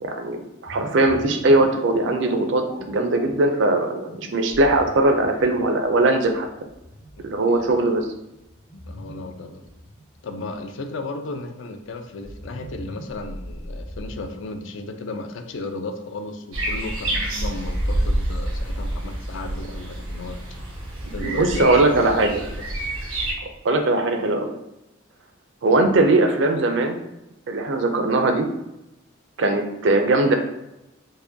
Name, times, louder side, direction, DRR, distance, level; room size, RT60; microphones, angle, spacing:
voice 1, 0.0-6.5 7.2-8.0 21.2-22.4 23.4-24.5 25.6-27.0 27.5-28.5 29.4-30.3, right 2 dB, 60° right, 5 dB, 0.4 m, -20 dB
sound 1, 0.7-10.8 12.0-14.2, equal, 45° left, 0.7 m, -40 dB
voice 2, 7.2-7.9 8.9-9.6 10.2-20.4 21.1-22.3 22.6-22.7, left 2 dB, 60° left, 6 dB, 0.4 m, -35 dB
sound 2, 16.5-23.3, right 1 dB, 90° right, 1.0 m, -27 dB
4.6 x 2.2 x 2.6 m, 0.89 s
head